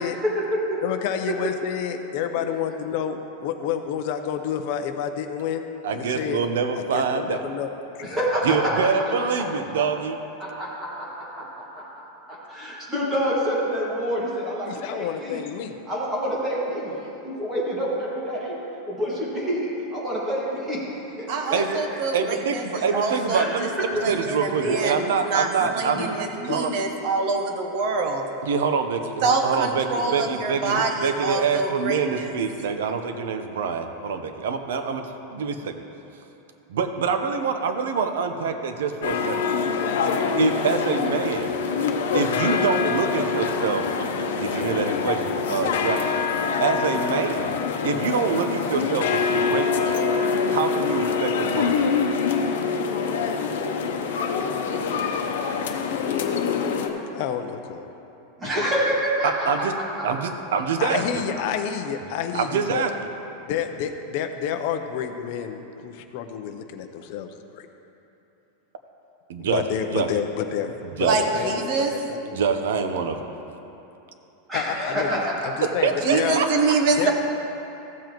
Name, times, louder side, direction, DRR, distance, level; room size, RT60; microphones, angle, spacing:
voice 1, 0.2-0.8 2.3-2.5 8.0-8.9 10.4-11.9 12.3-15.4 15.9-17.0 17.2-18.6 18.9-21.8 23.3-23.5 23.9-24.0 24.6-24.7 25.1-25.2 25.6-26.0 26.4-26.6 58.4-59.7 74.5-75.7 76.5-76.6, equal, 10° right, -6 dB, 1.9 m, -27 dB
voice 2, 0.8-5.6 5.9-6.4 6.9-7.7 8.0-8.2 14.7-15.7 55.7-57.9 60.8-62.8 63.5-67.6 69.4-70.7 71.0-71.1 71.3-72.0 72.2-72.4 74.5-76.4 77.0-77.1, left 8 dB, 45° left, 7 dB, 0.6 m, -29 dB
voice 3, 5.8-7.5 8.4-10.2 21.5-21.8 22.1-23.7 24.0-26.7 28.4-35.7 36.7-39.4 40.4-41.6 42.1-46.1 46.6-47.6 47.8-50.0 50.5-51.8 59.2-59.7 60.0-61.2 62.3-62.9 69.3-69.6 69.9-70.1 71.0-71.2 72.3-73.2 75.6-76.5, right 5 dB, 90° right, 7 dB, 0.8 m, -25 dB
voice 4, 21.3-23.4 24.0-28.2 29.2-32.3 71.0-71.9 76.0-77.1, right 3 dB, 40° right, 3 dB, 1.0 m, -25 dB
sound 1, 39.0-56.9, left 5 dB, 90° left, 0.8 m, -25 dB
15.0 x 7.3 x 3.0 m, 3.0 s
supercardioid pair, 175°, 0 cm